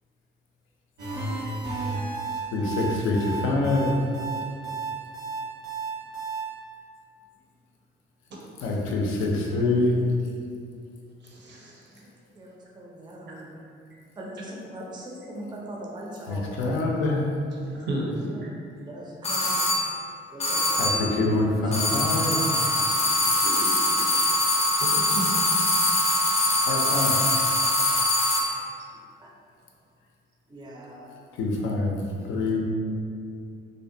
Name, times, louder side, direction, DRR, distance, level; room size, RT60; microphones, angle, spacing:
sound 1, 1.0-6.4, right 3 dB, 90° right, 1.1 m, -32 dB
voice 1, 2.5-3.9 8.6-10.0 16.3-17.3 20.8-22.4 26.7-27.1 31.4-32.0 32.3-32.6, left 2 dB, 80° left, 0 dB, 0.4 m, -25 dB
voice 2, 11.2-11.8 17.9-18.5 23.9-24.3 24.7-25.9, right 1 dB, 65° right, -3 dB, 0.6 m, -34 dB
voice 3, 12.4-13.5 14.2-16.8 18.3-18.5 18.9-19.6 19.9-20.0 20.3-21.5 22.9-24.5 25.9-26.0 29.2-29.3 30.5-31.1, right 1 dB, 20° right, -3 dB, 0.4 m, -40 dB
sound 2, 19.2-19.9 20.4-21.1 21.7-28.6, left 1 dB, 30° left, 0.5 m, -23 dB
2.6 x 2.1 x 2.6 m, 2.4 s
cardioid pair, 90°, 20 cm